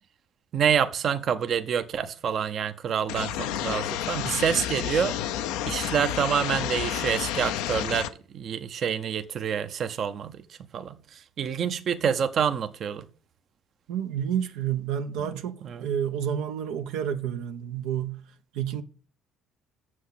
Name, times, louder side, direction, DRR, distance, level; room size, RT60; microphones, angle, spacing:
voice 1, 0.5-5.2 5.6-13.0 15.2-15.9, right 7 dB, 50° right, 0.8 m, -27 dB
sound 1, 3.1-8.1, left 11 dB, 85° left, 0.6 m, -30 dB
voice 2, 13.9-18.2 18.5-18.8, right 9 dB, 80° right, 0.8 m, -30 dB
7.2 x 6.2 x 7.8 m
supercardioid pair, 85°, 0 cm